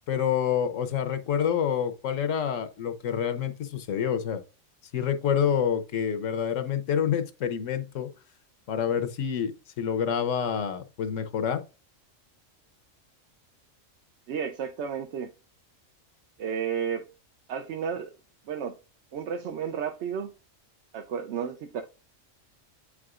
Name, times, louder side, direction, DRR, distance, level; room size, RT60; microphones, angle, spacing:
voice 1, 0.1-4.4 4.9-8.1 8.7-11.6, left 8 dB, 75° left, 1.1 m, -27 dB
voice 2, 14.3-15.3 16.4-17.1 17.5-18.1 18.5-18.8 19.1-20.3 20.9-21.8, right 7 dB, 65° right, 0.8 m, -32 dB
8.2 x 4.8 x 2.4 m
omnidirectional pair, 1.3 m